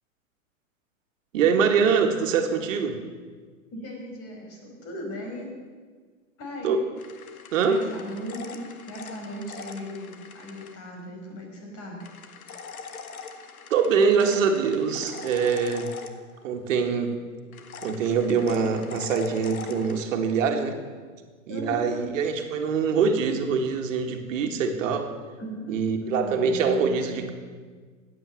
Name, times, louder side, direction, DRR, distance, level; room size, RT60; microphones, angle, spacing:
voice 1, 1.3-3.0 6.6-6.8 7.5-7.8 13.7-15.9 16.4-17.1 17.8-20.8 21.5-25.1 25.7-27.3, right 5 dB, 65° right, 4 dB, 1.9 m, -24 dB
voice 2, 3.7-5.5 6.4-6.7 7.6-12.0 21.5-21.9 25.4-27.1, equal, 35° left, 1 dB, 5.1 m, -37 dB
sound 1, 7.0-10.7 12.0-16.6 17.5-20.0, left 5 dB, 80° left, 1.5 m, -42 dB
15.0 x 9.4 x 7.7 m, 1.5 s
hypercardioid pair, 110°, 41 cm